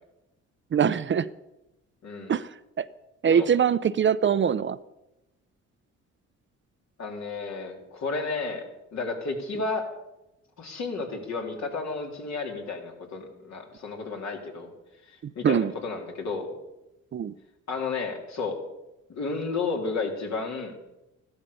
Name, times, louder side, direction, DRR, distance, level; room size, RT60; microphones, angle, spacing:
voice 1, 0.7-1.3 2.3-2.5 2.8-2.9 3.2-4.8 15.2-15.7 17.1-17.3, right 8 dB, 40° right, 15 dB, 0.6 m, -23 dB
voice 2, 7.0-8.6 8.9-9.8 10.6-14.7 15.1-16.5 17.7-18.6 19.1-20.7, left 4 dB, 65° left, 2 dB, 3.6 m, -32 dB
14.5 x 12.0 x 7.0 m, 0.95 s
cardioid pair, 90°, 30 cm